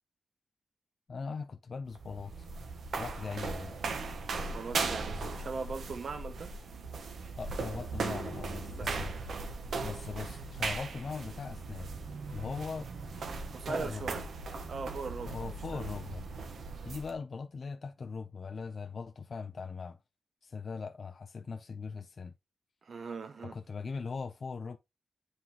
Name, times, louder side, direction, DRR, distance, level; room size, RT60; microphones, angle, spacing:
voice 1, 1.1-2.5 3.0-3.7 7.4-9.1 9.8-11.9 12.3-12.9 13.6-14.1 15.3-16.2 16.8-20.0 20.4-22.3 23.4-24.8, left 5 dB, 55° left, 0.4 m, -40 dB
sound 1, 1.8-17.1, right 4 dB, 90° right, 0.9 m, -38 dB
voice 2, 4.5-6.5 8.7-9.0 13.5-14.2 14.7-15.8 22.8-23.6, right 4 dB, 65° right, 0.8 m, -40 dB
9.4 x 3.7 x 2.8 m
wide cardioid pair, 130°, 0 cm